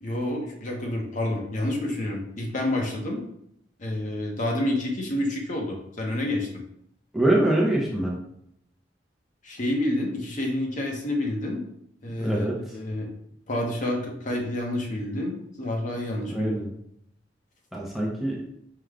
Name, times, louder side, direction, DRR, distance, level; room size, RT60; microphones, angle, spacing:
voice 1, 0.0-3.2 3.8-6.6 9.4-11.6 12.0-12.5 12.7-13.1 13.5-16.6, left 1 dB, 45° left, 0 dB, 0.8 m, -28 dB
voice 2, 7.1-8.2 12.2-12.6 16.3-16.7 17.7-18.4, right 1 dB, ahead, -4 dB, 0.6 m, -24 dB
4.7 x 2.2 x 3.6 m, 0.74 s
head